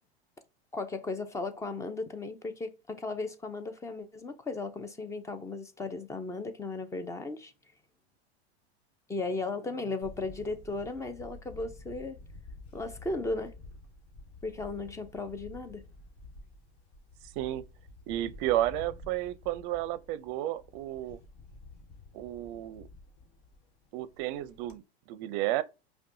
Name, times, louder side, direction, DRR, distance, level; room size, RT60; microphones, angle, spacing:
voice 1, 0.7-7.5 9.1-12.2 12.7-13.6 14.4-15.8, left 3 dB, 10° left, 0.5 m, -36 dB
Camera, 10.0-24.8, left 2 dB, 50° left, 1.4 m, -50 dB
voice 2, 18.1-21.2 22.1-22.9 23.9-24.8 25.1-25.6, right 14 dB, 50° right, 0.5 m, -32 dB
5.2 x 2.3 x 2.6 m
hypercardioid pair, 125°, 33 cm